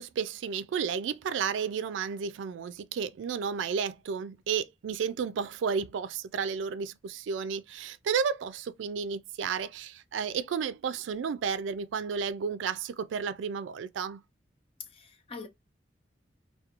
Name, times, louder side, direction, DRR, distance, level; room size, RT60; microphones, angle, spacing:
voice 1, 0.0-14.2, right 6 dB, 85° right, 0.3 m, -32 dB
voice 2, 14.8-15.5, left 5 dB, 30° left, 0.4 m, -43 dB
2.4 x 2.2 x 2.8 m
head